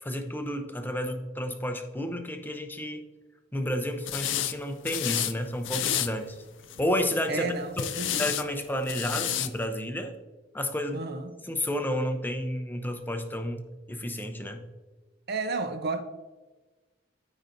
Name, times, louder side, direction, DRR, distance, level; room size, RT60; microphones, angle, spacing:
voice 1, 0.0-3.0 3.5-6.4 6.8-7.5 7.8-7.9 8.2-10.1 10.5-11.0 11.4-13.6 13.9-14.7, left 1 dB, 10° left, 0.7 m, -31 dB
sound 1, 4.1-4.5 4.8-5.3 5.6-6.1 6.6-7.0 7.8-8.4 8.8-9.5, left 11 dB, 65° left, 0.4 m, -30 dB
voice 2, 7.3-8.3 10.9-11.3 15.3-16.0, right 3 dB, 55° right, 0.7 m, -32 dB
13.5 x 5.1 x 2.6 m
head